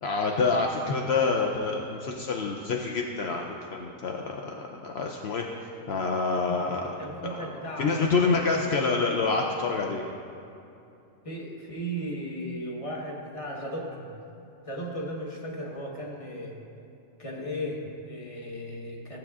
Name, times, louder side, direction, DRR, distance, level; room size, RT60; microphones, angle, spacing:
voice 1, 0.0-4.4 4.7-7.0 7.4-7.5 7.8-10.0, left 4 dB, 70° left, 0 dB, 0.6 m, -27 dB
voice 2, 6.5-8.7 11.2-14.1 14.7-16.6 17.2-19.2, equal, 25° left, -2 dB, 1.1 m, -36 dB
15.0 x 8.0 x 2.4 m, 2.7 s
omnidirectional pair, 1.7 m